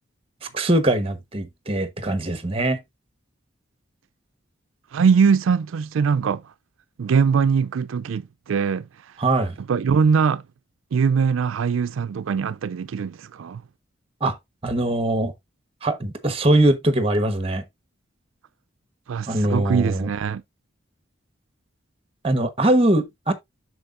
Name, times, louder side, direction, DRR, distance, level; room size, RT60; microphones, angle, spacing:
voice 1, 0.5-2.8 9.2-9.6 14.2-14.4 14.6-15.3 15.8-17.6 19.3-20.1 22.2-23.3, right 1 dB, 30° right, 1.1 m, -21 dB
voice 2, 4.9-6.5 7.0-9.1 9.6-10.4 10.9-13.6 19.1-20.4, right 6 dB, 85° right, 0.4 m, -22 dB
7.8 x 6.5 x 2.5 m
head